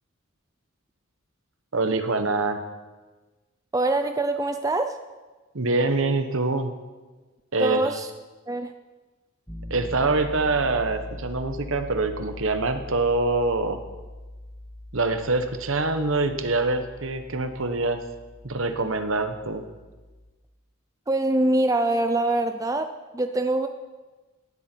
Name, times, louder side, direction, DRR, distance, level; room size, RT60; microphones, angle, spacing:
voice 1, 1.7-2.6 5.5-6.7 7.5-7.8 9.7-13.8 14.9-18.0 18.4-19.7, right 3 dB, 60° right, 8 dB, 1.2 m, -25 dB
voice 2, 3.7-5.0 7.6-8.1 8.5-8.7 21.1-23.7, right 2 dB, 15° right, 7 dB, 0.5 m, -24 dB
Piano, 9.5-20.3, left 1 dB, ahead, 1.6 m, -41 dB
18.0 x 12.0 x 4.6 m, 1.3 s
head